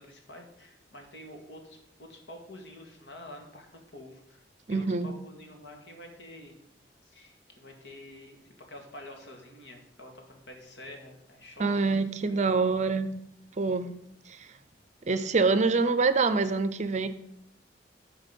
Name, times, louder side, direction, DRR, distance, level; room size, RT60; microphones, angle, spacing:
voice 1, 0.0-4.4 4.7-6.6 7.0-12.5, left 1 dB, 80° left, 2 dB, 2.0 m, -48 dB
voice 2, 4.7-5.1 11.6-13.1 13.6-13.9 14.3-14.4 15.1-17.1, right 4 dB, 40° right, 13 dB, 0.6 m, -25 dB
12.5 x 4.5 x 5.3 m, 0.74 s
head